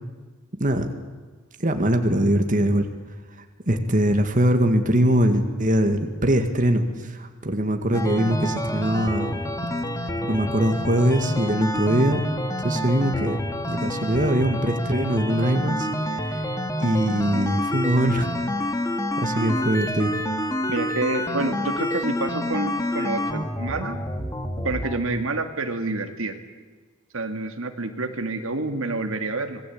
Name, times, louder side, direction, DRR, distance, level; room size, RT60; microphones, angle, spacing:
voice 1, 0.5-0.9 1.6-9.4 10.0-12.2 12.6-13.4 13.7-18.3 18.7-18.8 19.2-20.2, right 1 dB, 40° right, 6 dB, 2.0 m, -22 dB
sound 1, 7.9-25.0, left 1 dB, 15° left, 2.0 m, -28 dB
voice 2, 20.7-24.0 24.6-26.4 27.1-29.6, right 3 dB, 70° right, 7 dB, 2.1 m, -28 dB
26.5 x 20.0 x 8.7 m, 1.4 s
head